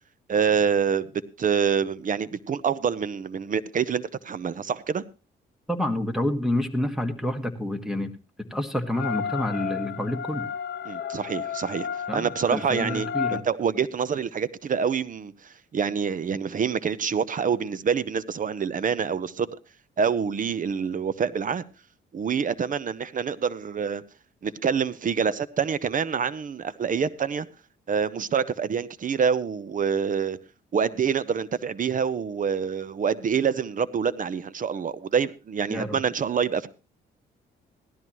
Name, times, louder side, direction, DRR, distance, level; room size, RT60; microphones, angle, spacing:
voice 1, 0.3-1.1 1.4-5.0 10.9-11.9 12.1-15.3 15.7-19.5 20.0-21.6 22.1-24.0 24.4-27.5 27.9-30.4 30.7-36.7, right 6 dB, 40° right, 0.7 m, -26 dB
voice 2, 5.7-8.1 8.5-10.5 12.1-13.4 35.7-36.0, left 1 dB, ahead, 1.7 m, -28 dB
sound 1, 8.9-13.4, left 7 dB, 60° left, 0.8 m, -32 dB
16.5 x 12.5 x 3.1 m
cardioid pair, 90°, 20 cm